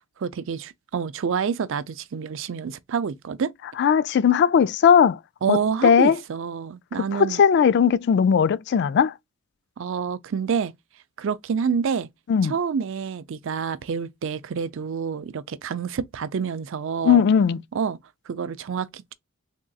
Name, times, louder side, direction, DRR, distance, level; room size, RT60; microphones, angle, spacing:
voice 1, 0.2-3.5 5.4-7.4 9.8-10.7 11.2-12.1 12.4-17.2 17.7-18.0 18.3-19.1, right 6 dB, 65° right, 0.4 m, -28 dB
voice 2, 3.8-5.2 5.5-6.2 7.1-9.1 12.3-12.5 17.0-17.6, left 7 dB, 55° left, 0.3 m, -18 dB
3.6 x 2.3 x 3.9 m
head